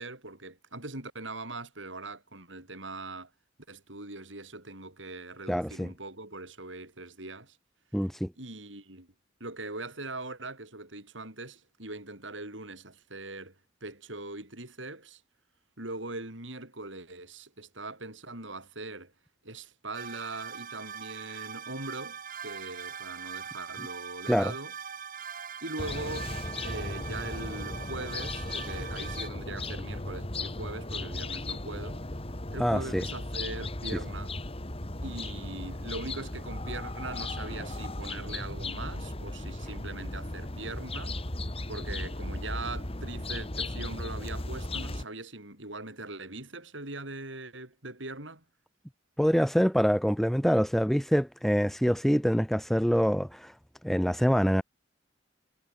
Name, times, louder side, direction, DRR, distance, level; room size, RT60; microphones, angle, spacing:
voice 1, 0.0-3.3 3.7-7.6 8.4-9.1 9.4-15.2 15.8-19.1 19.4-24.7 25.6-26.3 26.6-32.0 32.5-34.3 35.0-41.2 41.7-48.4, right 2 dB, 70° right, 7.8 m, -41 dB
voice 2, 5.5-5.9 7.9-8.3 24.3-24.5 32.6-33.0 49.2-53.5 53.8-54.6, equal, ahead, 2.9 m, -25 dB
sound 1, 19.9-29.3, right 7 dB, 45° right, 6.5 m, -42 dB
sound 2, 25.8-45.0, left 2 dB, 30° left, 2.4 m, -36 dB
head